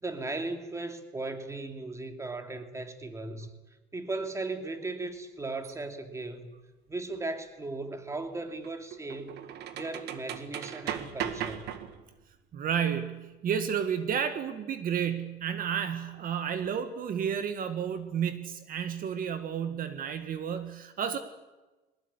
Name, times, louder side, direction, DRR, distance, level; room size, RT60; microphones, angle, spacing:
voice 1, 0.0-3.5 3.9-6.5 6.9-9.5 9.7-11.7, right 2 dB, 15° right, 2.9 m, -37 dB
sound 1, 5.6-5.7 8.1-12.2, right 10 dB, 80° right, 1.9 m, -38 dB
voice 2, 12.5-21.2, right 8 dB, 55° right, 1.9 m, -31 dB
22.5 x 19.5 x 10.0 m
cardioid pair, 110°, 17 cm